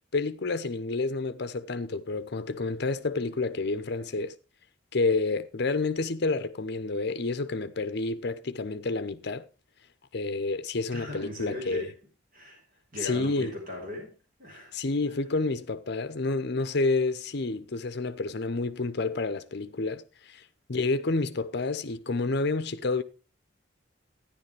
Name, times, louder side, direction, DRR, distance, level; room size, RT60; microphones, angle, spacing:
voice 1, 0.1-4.3 4.9-9.5 10.1-11.9 13.0-13.5 14.7-20.4 20.7-23.0, left 3 dB, 55° left, 0.7 m, -29 dB
voice 2, 10.9-12.0 12.3-14.8, left 1 dB, 45° right, 3.9 m, -39 dB
12.0 x 10.5 x 3.3 m
head